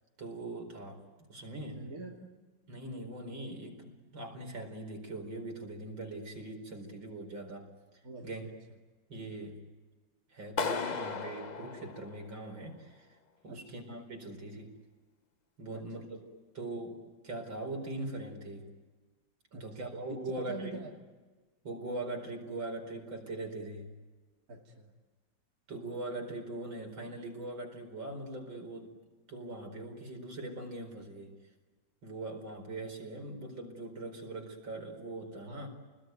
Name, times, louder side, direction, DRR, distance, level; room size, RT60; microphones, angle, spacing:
voice 1, 0.2-1.0 1.3-1.8 2.7-7.7 8.2-8.4 9.1-9.6 10.3-13.1 13.4-14.8 15.6-16.2 16.5-18.7 19.5-20.8 21.6-23.9 25.7-29.0 29.3-31.3 32.0-35.7, right 2 dB, 75° right, 2 dB, 5.4 m, -41 dB
voice 2, 1.8-2.3 8.0-8.5 13.5-13.8 15.7-16.1 19.5-19.9 20.4-20.9 24.5-24.9 35.5-35.7, right 3 dB, 45° right, -1 dB, 3.0 m, -46 dB
Clapping, 10.6-12.6, left 5 dB, 45° left, 0.5 m, -36 dB
30.0 x 20.5 x 9.4 m, 1.3 s
omnidirectional pair, 2.1 m